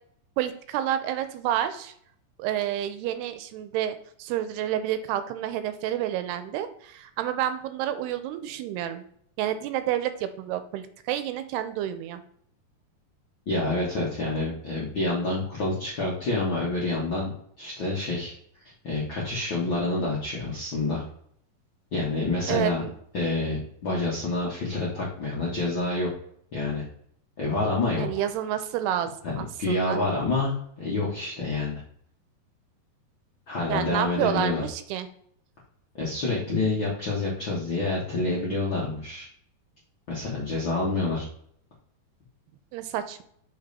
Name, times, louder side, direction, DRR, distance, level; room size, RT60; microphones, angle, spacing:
voice 1, 0.4-1.9 2.4-9.0 9.4-12.2 22.5-23.0 28.0-29.1 29.4-30.0 33.7-35.1 42.7-43.2, right 11 dB, 85° right, 11 dB, 2.6 m, -29 dB
voice 2, 13.5-17.3 17.6-18.3 18.8-21.0 21.9-22.8 23.1-26.1 26.5-26.8 27.4-28.1 29.2-29.3 29.6-31.8 33.5-34.6 36.0-39.3 40.1-41.2, left 2 dB, 90° left, -6 dB, 1.0 m, -27 dB
5.9 x 5.3 x 4.1 m, 0.65 s
omnidirectional pair, 4.8 m